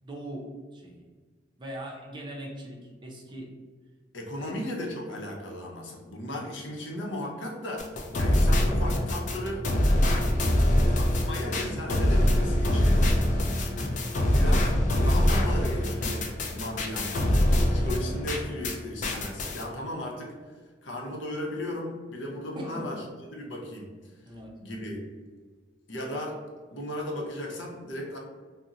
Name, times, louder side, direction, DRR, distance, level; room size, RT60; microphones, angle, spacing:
voice 1, 0.0-1.1 1.6-3.5 4.4-4.5 8.1-8.4 13.3-13.5 22.5-22.9 24.3-24.5, right 1 dB, 25° right, -1 dB, 0.5 m, -40 dB
voice 2, 4.1-9.6 10.9-13.0 14.3-20.3 20.8-24.1 24.6-25.0 25.9-26.4 26.7-28.2, left 1 dB, 80° left, -1 dB, 0.7 m, -36 dB
sound 1, 7.8-18.8 19.0-19.6, left 1 dB, 40° left, 0.4 m, -24 dB
2.5 x 2.0 x 3.9 m, 1.5 s
head